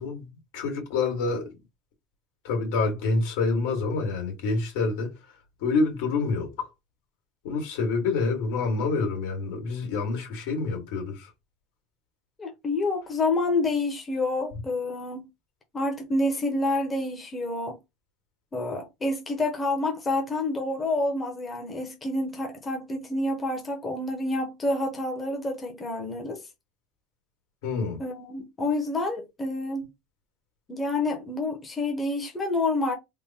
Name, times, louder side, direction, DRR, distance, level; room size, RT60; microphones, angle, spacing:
voice 1, 0.0-1.5 2.4-5.1 5.6-6.7 7.4-11.3 27.6-28.0, left 4 dB, 80° left, 1.8 m, -27 dB
voice 2, 12.4-15.3 15.7-17.8 18.5-26.4 28.0-29.9 30.7-32.9, left 2 dB, 15° left, 0.7 m, -28 dB
3.6 x 2.1 x 4.2 m
cardioid pair, 170°, 0 cm